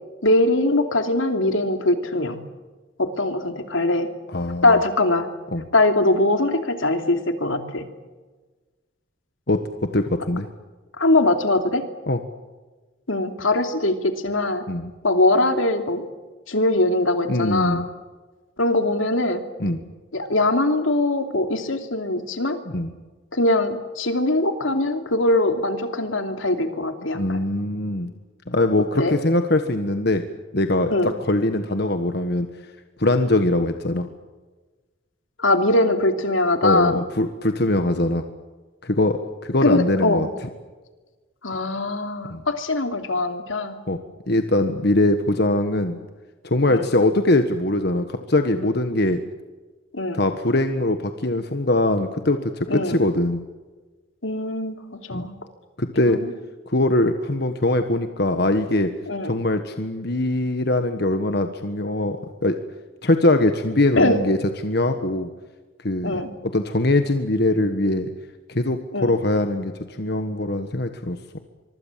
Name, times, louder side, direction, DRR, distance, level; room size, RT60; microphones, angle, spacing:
voice 1, 0.2-2.4 3.0-4.1 4.6-5.3 5.7-7.9 11.0-11.8 13.1-14.6 15.0-16.1 16.5-17.8 18.6-19.4 20.1-22.6 23.3-27.4 29.0-29.1 30.9-31.1 35.4-37.0 39.6-40.2 41.4-43.8 46.7-46.9 49.9-50.2 52.7-53.0 54.2-55.4 56.1-56.3 59.1-59.3 64.0-64.2 66.0-66.3 68.9-69.1, left 2 dB, 80° left, 7 dB, 2.9 m, -21 dB
voice 2, 4.3-4.8 5.5-5.6 9.5-10.5 12.1-12.2 14.7-14.9 17.3-17.9 19.6-19.8 22.7-22.9 27.1-28.1 28.5-30.2 30.5-32.5 33.0-34.1 36.6-38.2 38.8-40.3 42.3-42.4 43.9-44.0 44.3-46.0 46.4-49.2 50.1-53.4 55.1-55.3 55.8-56.2 56.7-58.9 59.2-62.6 63.0-64.4 64.6-65.3 65.8-66.2 66.4-68.1 68.5-71.2, left 1 dB, 55° left, 7 dB, 1.5 m, -22 dB
25.0 x 24.0 x 7.5 m, 1.3 s
head